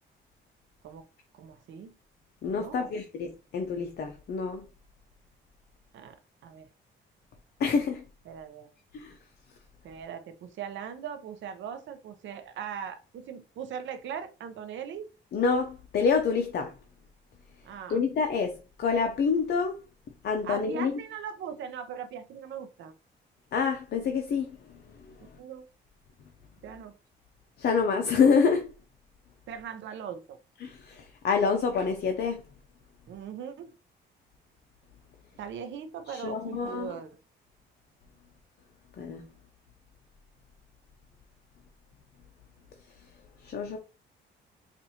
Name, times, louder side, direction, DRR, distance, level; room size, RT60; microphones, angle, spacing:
voice 1, 1.3-1.9 2.6-2.9 5.9-6.7 8.3-8.7 9.8-15.1 17.6-18.0 20.4-22.9 25.4-25.7 26.6-27.0 29.5-30.4 33.1-33.7 35.4-37.1, right 8 dB, 70° right, 0.6 m, -40 dB
voice 2, 2.4-4.6 7.6-8.0 8.9-9.1 15.3-16.7 17.9-19.8 20.2-20.9 23.5-24.6 25.1-25.2 27.6-28.7 30.6-32.4 36.1-36.9 39.0-39.2 43.4-43.8, left 5 dB, 55° left, 0.6 m, -27 dB
4.2 x 2.5 x 2.8 m
cardioid pair, 90°, 20 cm